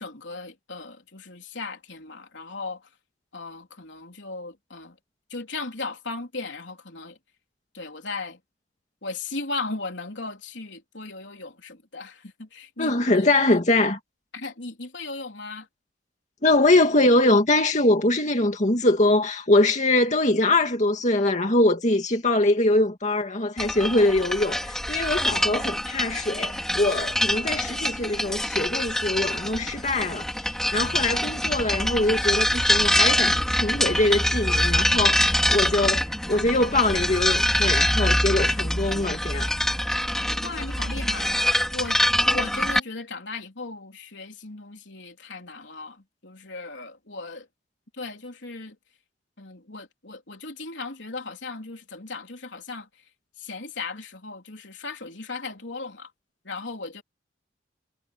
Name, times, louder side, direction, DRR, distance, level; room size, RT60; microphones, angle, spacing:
voice 1, 0.0-2.9 3.3-5.0 5.3-7.2 7.7-8.4 9.0-13.6 14.3-15.7 40.4-41.3 41.7-42.0 42.3-47.5 48.0-48.8 49.4-52.9 53.4-56.1 56.4-57.0, left 3 dB, 75° left, 3.8 m, -36 dB
voice 2, 12.8-14.0 16.4-30.3 30.7-39.5, left 2 dB, 40° left, 2.2 m, -23 dB
sound 1, 23.6-42.8, equal, 5° left, 3.7 m, -24 dB
head